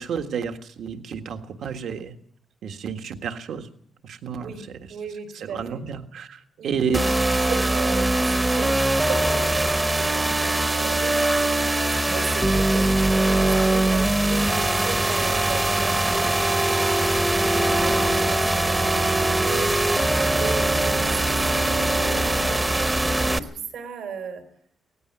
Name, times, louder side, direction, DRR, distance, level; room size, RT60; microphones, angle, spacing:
voice 1, 0.0-2.1 2.6-3.7 4.0-4.8 5.4-7.0, right 6 dB, 70° right, 6 dB, 1.6 m, -31 dB
voice 2, 4.4-5.8 6.6-7.1 7.4-11.2 12.0-22.9 23.2-24.5, right 5 dB, 85° right, 6 dB, 4.7 m, -36 dB
sound 1, 6.9-23.4, right 2 dB, 15° right, 0.8 m, -22 dB
19.0 x 16.0 x 9.1 m, 0.64 s
wide cardioid pair, 170°, 0 cm